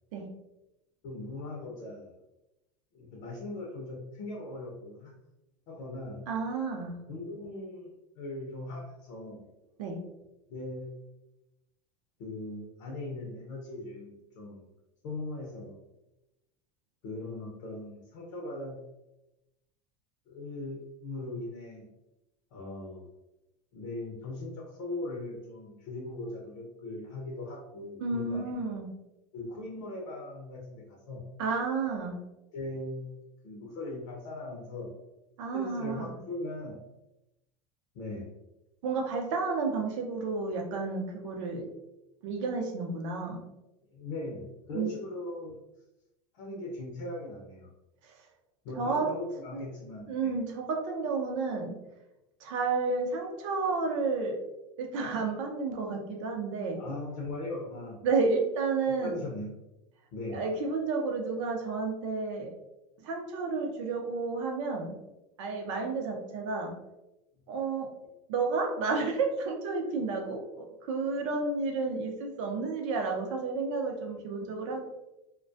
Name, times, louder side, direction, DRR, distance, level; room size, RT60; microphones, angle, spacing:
voice 1, 1.0-2.1 2.9-5.1 5.7-6.3 7.1-9.4 10.5-10.9 12.2-14.7 15.0-15.8 17.0-18.8 20.3-21.9 22.5-23.1 23.7-28.7 29.3-31.2 32.5-34.9 35.5-36.8 37.9-38.3 43.9-45.6 46.3-47.7 48.6-50.3 56.7-58.1 58.9-59.5 60.1-60.4, left 2 dB, 65° left, -2 dB, 0.7 m, -39 dB
voice 2, 6.3-7.0 9.8-10.0 28.0-28.9 31.4-32.2 35.4-36.1 38.8-41.7 42.2-43.4 44.7-45.0 48.0-48.1 48.8-49.1 49.5-49.6 50.1-51.8 52.4-54.4 54.8-56.8 58.0-59.2 60.3-62.5 63.0-65.0 65.4-66.7 67.5-67.9 68.3-74.9, right 4 dB, 70° right, 2 dB, 0.6 m, -31 dB
2.2 x 2.1 x 2.6 m, 0.93 s
hypercardioid pair, 95°, 16 cm